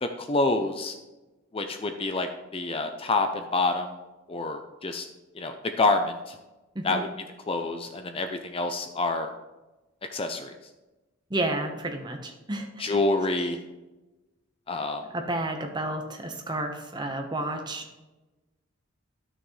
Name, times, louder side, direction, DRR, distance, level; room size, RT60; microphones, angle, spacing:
voice 1, 0.0-0.9 1.5-3.9 4.3-5.0 5.4-6.4 6.8-7.1 7.5-9.3 10.1-10.5 12.8-13.6 14.7-15.0, left 2 dB, 25° left, 6 dB, 0.5 m, -27 dB
voice 2, 11.3-12.8 15.0-17.8, right 1 dB, 20° right, 3 dB, 1.0 m, -31 dB
12.5 x 6.1 x 3.2 m, 1.1 s
head